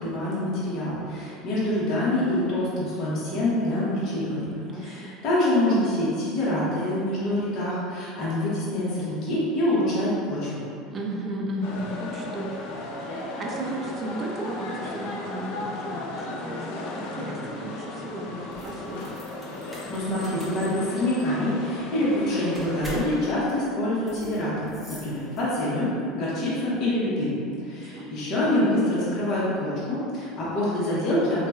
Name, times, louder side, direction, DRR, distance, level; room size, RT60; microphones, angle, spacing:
voice 1, 0.0-4.5 4.8-10.6 19.9-27.3 27.6-31.5, left 1 dB, 55° left, -8 dB, 0.9 m, -26 dB
voice 2, 4.6-5.2 10.9-12.6 13.1-19.0 27.6-28.1, right 1 dB, 35° right, -1 dB, 0.4 m, -34 dB
sound 1, 11.6-23.2, left 2 dB, 70° left, 0.4 m, -35 dB
sound 2, 18.5-25.8, equal, 5° right, 0.7 m, -44 dB
2.8 x 2.2 x 2.3 m, 2.4 s
supercardioid pair, 100°, 0 cm